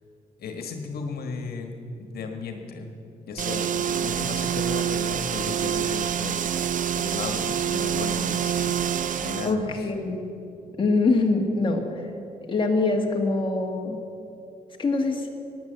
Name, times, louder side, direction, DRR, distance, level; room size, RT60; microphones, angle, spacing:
voice 1, 0.4-2.9 3.3-8.9 9.2-9.9, left 4 dB, 75° left, 4 dB, 1.5 m, -35 dB
sound 1, 3.4-9.5, right 9 dB, 55° right, 0.6 m, -26 dB
sound 2, 3.9-9.7, right 2 dB, 85° right, 3.3 m, -46 dB
voice 2, 9.5-10.2 10.8-12.0 12.5-14.0 14.8-15.3, left 3 dB, 30° left, 1 dB, 1.8 m, -24 dB
15.5 x 10.5 x 7.9 m, 2.6 s
cardioid pair, 120°, 16 cm